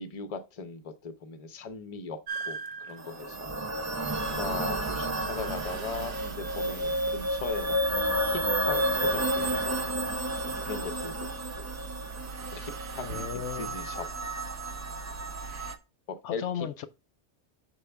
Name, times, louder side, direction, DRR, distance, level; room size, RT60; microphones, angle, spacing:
voice 1, 0.0-2.2 2.4-3.5 4.3-7.8 8.3-9.9 10.6-11.3 11.6-11.7 12.5-14.1 16.1-16.7, left 4 dB, 35° left, 0.8 m, -39 dB
sound 1, 2.3-7.0 7.3-9.2, right 5 dB, 65° right, 0.8 m, -44 dB
sound 2, 3.0-15.8, equal, 20° right, 0.4 m, -31 dB
sound 3, 3.7-15.7, right 5 dB, 90° right, 1.1 m, -43 dB
voice 2, 13.0-13.8 16.2-16.9, left 9 dB, 80° left, 0.9 m, -35 dB
6.9 x 4.6 x 3.4 m
omnidirectional pair, 1.2 m